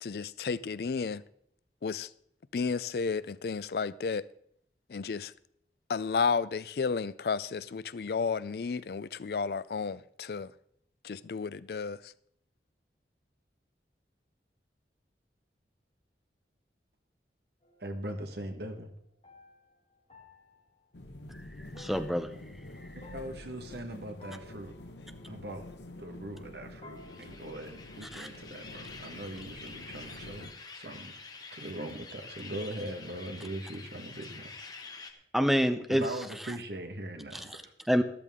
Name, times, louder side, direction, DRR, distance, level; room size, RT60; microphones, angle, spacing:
voice 1, 0.0-1.2 1.8-2.1 2.5-4.3 4.9-5.3 5.9-10.5 11.0-12.1, left 5 dB, 60° left, 0.4 m, -32 dB
sound 1, 17.6-26.5 26.8-28.9, left 1 dB, 40° left, 5.1 m, -57 dB
voice 2, 17.8-18.9 23.1-24.7 25.3-25.6 26.0-31.1 31.5-34.6 35.9-37.7, right 1 dB, 65° right, 1.5 m, -41 dB
sound 2, 20.9-30.5, left 1 dB, 80° left, 1.0 m, -47 dB
voice 3, 21.8-22.3 28.1-28.3 35.3-36.0 37.3-37.6 37.9-38.0, equal, ahead, 0.6 m, -27 dB
sound 3, 27.0-35.1, left 4 dB, 20° left, 1.0 m, -47 dB
13.5 x 12.5 x 3.7 m
head